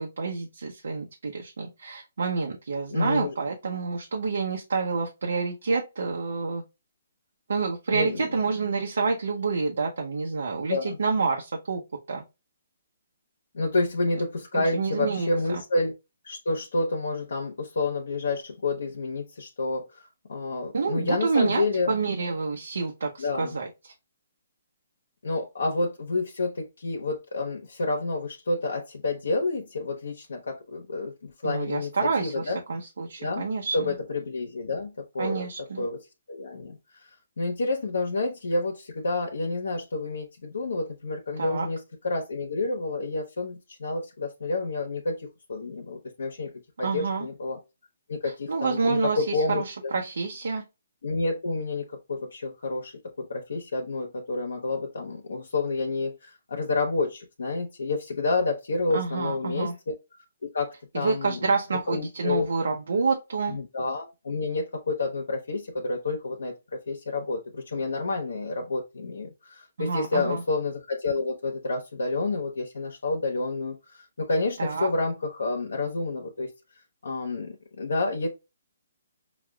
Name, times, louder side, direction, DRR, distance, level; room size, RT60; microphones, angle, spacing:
voice 1, 0.0-6.6 7.5-11.8 12.1-12.2 14.7-15.3 20.7-23.9 31.4-34.0 35.2-35.8 41.4-41.7 46.8-47.3 48.5-50.6 58.9-59.7 60.9-63.6 69.8-70.4 74.6-74.9, right 4 dB, 80° right, 0.8 m, -28 dB
voice 2, 2.9-3.3 7.9-8.3 10.7-11.0 13.5-15.9 16.2-21.9 23.2-23.6 25.2-32.6 33.2-33.5 33.7-35.5 35.8-47.6 48.1-49.6 51.0-59.9 60.4-61.5 61.9-62.5 63.5-76.5 77.0-78.3, left 3 dB, 80° left, 0.9 m, -29 dB
6.0 x 2.3 x 2.3 m
hypercardioid pair, 155°, 0 cm